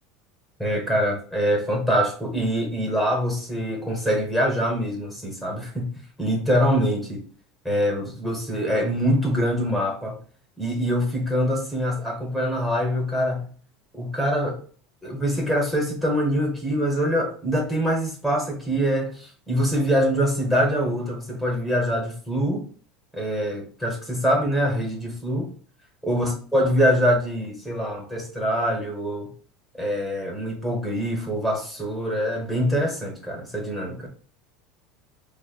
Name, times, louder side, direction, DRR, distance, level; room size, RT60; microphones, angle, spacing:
voice 1, 0.6-5.9 6.2-7.2 7.6-10.2 10.6-13.5 13.9-14.6 15.0-22.7 23.1-25.5 26.0-29.3 29.7-34.1, equal, 5° left, 0.9 m, -24 dB
5.0 x 2.1 x 2.3 m
supercardioid pair, 155°, 0 cm